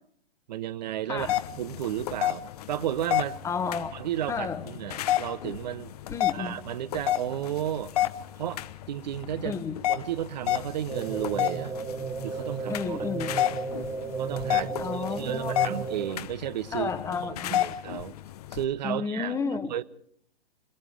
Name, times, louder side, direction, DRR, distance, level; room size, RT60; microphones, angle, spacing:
voice 1, 0.5-1.3 1.6-3.4 3.9-5.9 6.3-7.9 8.4-9.6 9.9-11.8 12.2-13.6 14.2-16.9 17.2-18.2 18.5-19.3 19.7-19.8, right 11 dB, 45° right, 1.0 m, -33 dB
voice 2, 1.1-1.4 3.4-3.9 4.3-4.6 6.1-6.6 9.4-9.8 12.7-13.4 14.8-15.8 16.7-17.7 18.8-19.8, left 5 dB, 10° left, 1.3 m, -32 dB
sound 1, 1.2-18.6, left 13 dB, 40° left, 1.0 m, -31 dB
sound 2, 10.9-16.3, right 5 dB, 10° right, 1.0 m, -34 dB
26.5 x 22.0 x 5.1 m
figure-of-eight pair, 125°, 31 cm